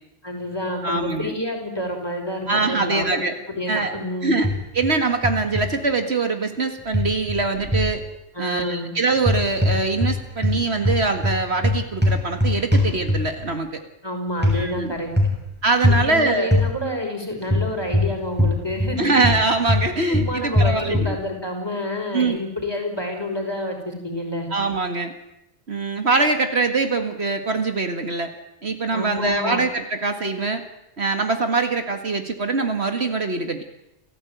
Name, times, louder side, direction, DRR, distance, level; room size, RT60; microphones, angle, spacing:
voice 1, 0.2-3.2 3.5-4.4 8.3-8.9 14.0-15.1 15.9-19.1 20.1-24.5 28.9-29.6, left 1 dB, 20° left, 1 dB, 5.6 m, -28 dB
voice 2, 0.8-1.3 2.5-3.3 3.7-3.9 4.2-4.5 4.7-8.0 8.4-13.8 14.5-14.9 15.6-16.5 19.0-21.2 22.1-22.4 24.5-25.1 25.7-28.4 28.6-30.6 31.0-33.6, right 3 dB, 60° right, 7 dB, 2.1 m, -23 dB
sound 1, 4.4-4.9 5.2-5.7 6.9-7.9 9.2-10.2 10.4-13.4 14.4-14.6 15.1-15.4 15.8-16.1 16.5-16.7 17.5-19.0 19.2-21.1, left 1 dB, 10° right, 6.4 m, -20 dB
29.0 x 14.5 x 9.2 m, 0.87 s
omnidirectional pair, 1.2 m